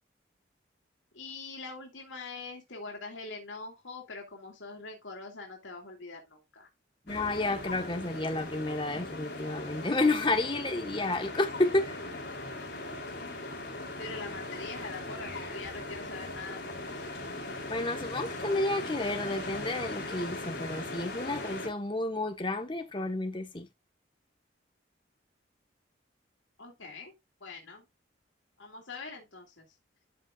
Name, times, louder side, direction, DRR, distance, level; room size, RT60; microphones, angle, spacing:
voice 1, 1.1-6.7 14.0-17.1 26.6-27.1 27.4-27.8 28.6-29.7, left 3 dB, 90° left, 2.5 m, -43 dB
sound 1, 7.1-21.7, left 2 dB, 60° left, 3.6 m, -39 dB
voice 2, 7.1-12.0 17.7-23.7, left 2 dB, 25° left, 1.4 m, -31 dB
13.0 x 5.3 x 2.5 m
head